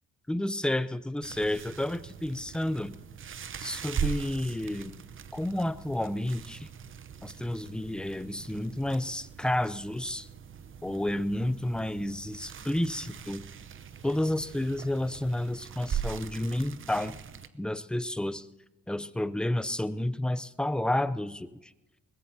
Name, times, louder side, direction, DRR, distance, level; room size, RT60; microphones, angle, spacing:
voice 1, 0.3-2.9 3.6-5.0 5.3-6.7 7.2-10.3 10.8-13.4 14.0-17.1 17.5-18.5 18.9-21.6, left 1 dB, 5° left, 13 dB, 0.5 m, -30 dB
sound 1, 1.2-17.5, right 8 dB, 45° right, 0.8 m, -40 dB
21.0 x 18.5 x 2.8 m, 1.0 s
cardioid pair, 90°, 30 cm